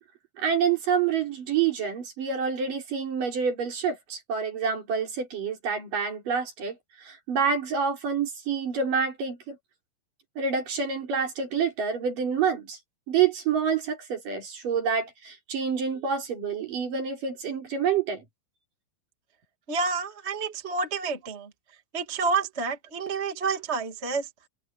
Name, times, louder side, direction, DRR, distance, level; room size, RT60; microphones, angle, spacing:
voice 1, 0.4-9.6 10.4-12.8 13.1-18.2, right 6 dB, 50° right, 5.3 m, -27 dB
voice 2, 19.7-21.5 21.9-24.3, right 4 dB, 20° right, 1.9 m, -29 dB
open air
omnidirectional pair, 5.3 m